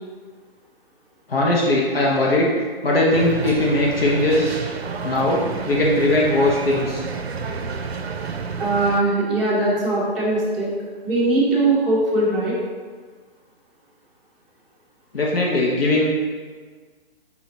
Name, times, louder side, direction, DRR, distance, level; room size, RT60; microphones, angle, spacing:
voice 1, 1.3-2.5 2.8-4.6 5.0-7.0 15.1-16.0, left 1 dB, 70° left, -4 dB, 0.9 m, -19 dB
sound 1, 3.1-9.0, right 5 dB, 85° right, 0.5 m, -30 dB
voice 2, 8.6-10.7 11.0-12.6, right 2 dB, ahead, -10 dB, 0.6 m, -20 dB
4.2 x 3.8 x 2.9 m, 1.5 s
figure-of-eight pair, 135°, 31 cm